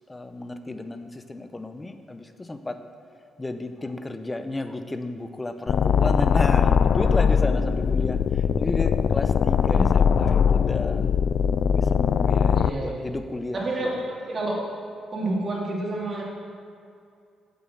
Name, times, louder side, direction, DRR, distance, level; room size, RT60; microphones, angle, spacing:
voice 1, 0.1-2.8 3.4-11.1 11.7-13.9, left 2 dB, 20° left, 9 dB, 0.7 m, -33 dB
sound 1, 5.7-12.7, left 7 dB, 60° left, 0.3 m, -21 dB
voice 2, 12.5-13.0 13.6-14.6 15.1-16.2, right 2 dB, 35° right, -3 dB, 2.6 m, -29 dB
8.1 x 7.4 x 7.3 m, 2.4 s
cardioid pair, 90°, 0 cm